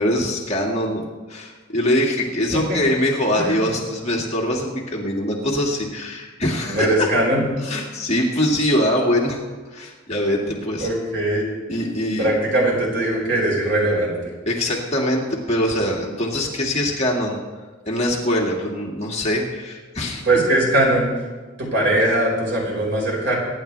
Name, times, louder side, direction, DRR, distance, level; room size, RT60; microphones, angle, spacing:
voice 1, 0.0-7.1 7.6-9.4 9.7-10.9 11.7-12.3 14.5-17.4 17.9-20.3, left 1 dB, 35° left, -2 dB, 2.2 m, -23 dB
voice 2, 3.4-3.7 6.7-7.4 10.8-11.5 12.2-14.3 20.2-21.2 21.6-23.3, right 1 dB, 65° right, -3 dB, 5.2 m, -20 dB
24.0 x 10.5 x 3.4 m, 1.3 s
head